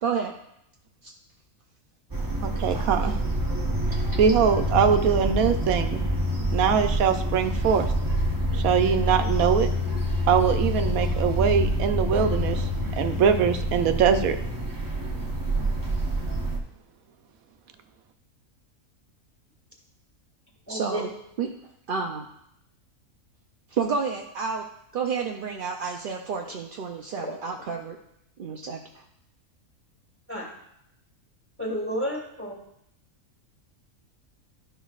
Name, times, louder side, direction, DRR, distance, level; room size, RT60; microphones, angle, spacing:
voice 1, 0.0-0.3 1.0-1.1 20.7-21.1 21.4-21.5 21.9-22.3 23.7-24.6 24.9-28.0 28.4-29.0, right 5 dB, 60° right, 2 dB, 0.5 m, -30 dB
sound 1, 2.1-16.6, equal, 20° right, 0.7 m, -27 dB
voice 2, 2.4-3.2 4.2-6.0 6.5-7.9 8.5-9.7 10.3-12.7 13.0-14.4, right 7 dB, 85° right, 8 dB, 1.0 m, -22 dB
voice 3, 20.7-21.1 27.2-27.4 30.3-30.5 31.6-32.6, equal, 10° left, -2 dB, 1.6 m, -31 dB
12.0 x 5.6 x 2.4 m, 0.77 s
omnidirectional pair, 1.5 m